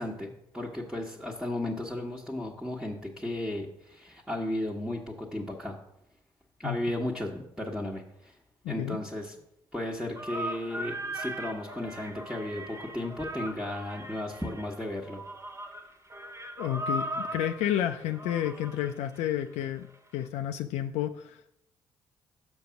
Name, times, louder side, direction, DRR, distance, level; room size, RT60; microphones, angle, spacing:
voice 1, 0.0-5.8 6.6-8.4 8.7-9.4 9.7-15.2, left 1 dB, 5° right, -3 dB, 1.2 m, -34 dB
voice 2, 8.6-9.0 16.6-19.9 20.1-21.6, left 11 dB, 80° left, 7 dB, 0.4 m, -31 dB
sound 1, 10.2-19.6, right 1 dB, 25° right, 0.8 m, -38 dB
6.2 x 5.2 x 5.7 m, 0.79 s
supercardioid pair, 55°, 12 cm